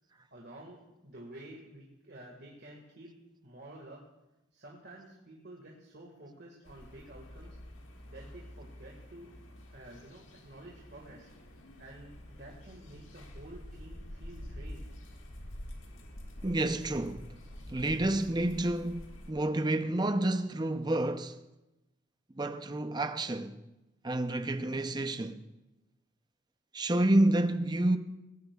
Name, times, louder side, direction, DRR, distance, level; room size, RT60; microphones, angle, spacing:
voice 1, 0.3-0.8 1.0-3.1 3.4-4.0 4.5-7.6 8.0-9.3 9.7-11.3 11.8-14.9, right 1 dB, 55° right, 1.8 m, -50 dB
sound 1, 6.6-19.3, equal, 85° left, 1.9 m, -47 dB
voice 2, 16.4-17.4 17.7-21.4 22.3-23.6 24.0-25.4 26.7-28.0, right 1 dB, 20° right, 0.6 m, -29 dB
19.5 x 16.0 x 2.4 m
head